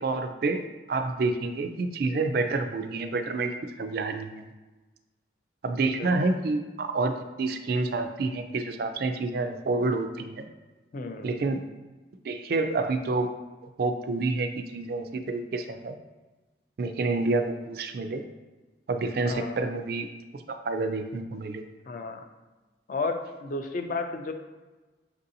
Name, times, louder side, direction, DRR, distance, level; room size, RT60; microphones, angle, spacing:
voice 1, 0.0-0.6 0.9-3.5 3.8-4.4 5.6-10.5 11.2-11.6 12.3-13.3 13.8-16.0 16.8-18.2 18.9-20.1 20.5-21.6, right 3 dB, 55° right, 7 dB, 0.3 m, -28 dB
voice 2, 10.9-11.4 19.2-19.6 21.9-22.2 22.9-24.3, left 3 dB, 45° left, 6 dB, 0.4 m, -32 dB
6.1 x 2.6 x 2.7 m, 1.2 s
head